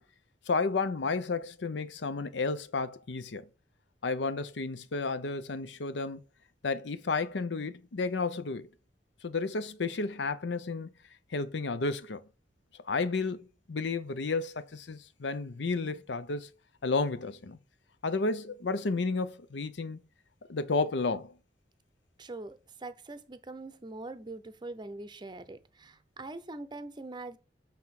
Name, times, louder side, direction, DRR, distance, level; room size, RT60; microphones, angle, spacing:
voice 1, 0.5-3.5 4.0-6.2 6.6-8.7 9.2-10.9 11.3-12.2 12.9-16.5 16.8-17.6 18.0-20.0 20.5-21.3, left 3 dB, 80° left, 0.7 m, -32 dB
voice 2, 22.2-27.4, right 2 dB, 25° right, 0.6 m, -43 dB
7.6 x 3.5 x 5.8 m
head